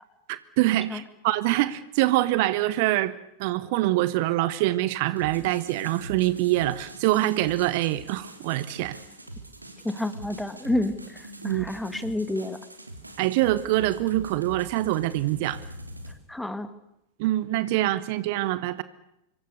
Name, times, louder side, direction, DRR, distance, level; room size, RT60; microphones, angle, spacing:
voice 1, 0.3-3.1 3.4-9.0 11.4-11.6 13.2-15.6 17.2-18.8, right 16 dB, 50° right, 1.2 m, -25 dB
sound 1, 5.2-16.1, right 2 dB, 85° right, 3.3 m, -43 dB
voice 2, 9.8-12.6 16.3-16.7, left 1 dB, 5° left, 2.1 m, -29 dB
26.5 x 23.5 x 6.7 m
figure-of-eight pair, 90°, 0 cm